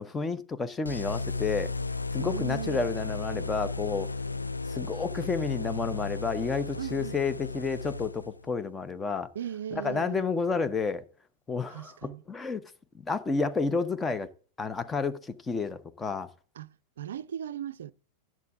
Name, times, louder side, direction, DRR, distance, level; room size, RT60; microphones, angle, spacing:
voice 1, 0.0-1.7 2.1-4.1 4.7-9.3 9.7-11.0 11.5-12.6 13.0-14.3 14.6-16.3, left 4 dB, 15° left, 0.8 m, -30 dB
sound 1, 0.8-8.5, left 3 dB, 80° left, 0.3 m, -34 dB
voice 2, 2.2-2.9 6.8-7.2 9.3-10.3 11.7-12.2 16.6-17.9, right 10 dB, 65° right, 0.4 m, -37 dB
10.5 x 7.4 x 3.6 m
figure-of-eight pair, 90°, 0 cm